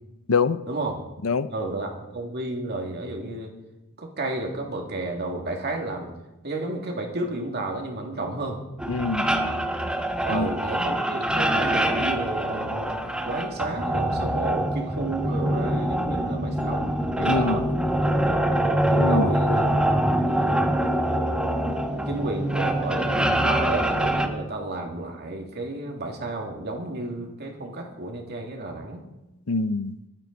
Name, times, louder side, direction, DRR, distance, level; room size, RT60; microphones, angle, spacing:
voice 1, 1.5-3.5 4.0-6.1 6.4-8.6 10.2-13.0 13.2-16.8 17.2-17.6 18.9-19.6 20.0-20.6 21.0-21.1 21.9-29.0, right 2 dB, 50° right, 1 dB, 2.5 m, -31 dB
sound 1, 8.8-24.3, right 1 dB, 5° right, 1.0 m, -24 dB
voice 2, 8.9-9.3 10.3-10.5 17.2-17.6 19.0-19.3 29.5-30.0, left 4 dB, 80° left, 14 dB, 0.6 m, -24 dB
23.5 x 9.0 x 4.1 m, 0.95 s
head